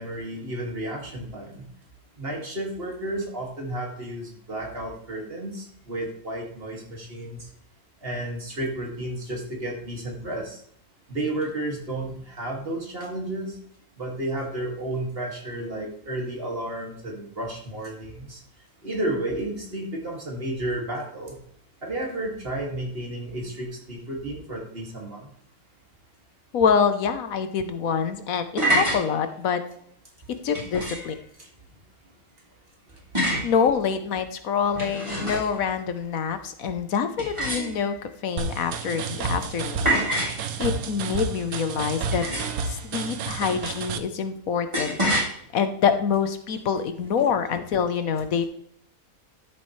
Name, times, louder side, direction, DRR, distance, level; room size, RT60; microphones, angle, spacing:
voice 1, 0.0-1.7 2.2-7.5 8.0-10.6 11.1-13.6 14.0-18.4 18.8-21.4 21.8-25.2 31.4-31.5, right 1 dB, 40° right, -1 dB, 2.6 m, -32 dB
voice 2, 26.5-29.6 30.4-31.1 33.2-38.0 38.2-42.2 42.7-45.3 45.5-48.5, left 6 dB, 75° left, 9 dB, 1.4 m, -26 dB
sound 1, 28.6-29.0 30.5-31.2 33.2-33.5 34.6-35.6 37.2-38.0 39.9-40.4 42.1-42.7 44.7-45.3, right 1 dB, 20° right, 3.4 m, -26 dB
sound 2, 38.4-44.0, right 5 dB, 90° right, 1.3 m, -31 dB
13.0 x 7.4 x 3.2 m, 0.69 s
omnidirectional pair, 1.5 m